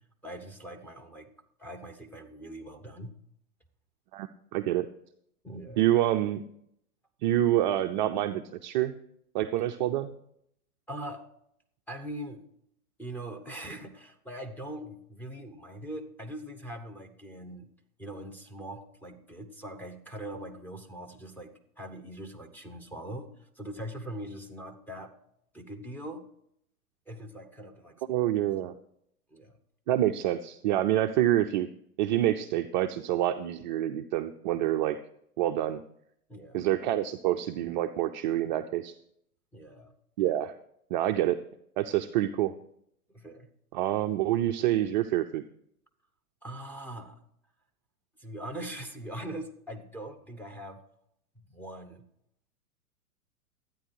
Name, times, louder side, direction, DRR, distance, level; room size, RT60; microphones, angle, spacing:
voice 1, 0.2-1.3 1.6-3.1 5.4-5.8 10.9-11.3 11.9-12.4 13.0-17.7 18.0-21.5 21.8-25.1 25.5-26.3 27.1-28.2 29.3-29.6 36.3-36.7 39.5-39.9 43.1-43.5 46.4-47.2 48.2-50.8 51.5-52.0, right 1 dB, 5° left, 6 dB, 1.1 m, -41 dB
voice 2, 4.1-4.9 5.8-6.4 7.2-8.9 9.3-10.1 28.1-28.7 29.9-31.7 32.0-35.0 35.4-35.8 36.5-38.9 40.2-40.6 40.9-41.4 41.8-42.5 43.7-45.4, right 13 dB, 35° right, 7 dB, 0.4 m, -27 dB
13.0 x 9.2 x 4.7 m, 0.73 s
hypercardioid pair, 110°, 45 cm